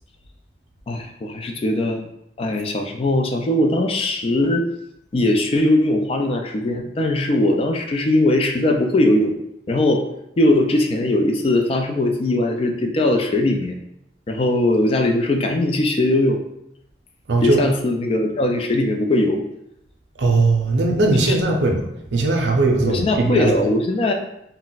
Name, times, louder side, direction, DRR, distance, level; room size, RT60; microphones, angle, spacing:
voice 1, 0.9-2.1 2.4-4.7 5.1-9.4 9.7-10.0 10.4-13.8 14.3-16.4 17.4-19.4 21.1-21.3 22.8-24.1, left 1 dB, 35° left, 4 dB, 0.3 m, -20 dB
voice 2, 17.3-17.6 20.2-21.8 22.1-23.5, right 2 dB, 85° right, 1 dB, 0.5 m, -19 dB
2.3 x 2.1 x 3.9 m, 0.80 s
head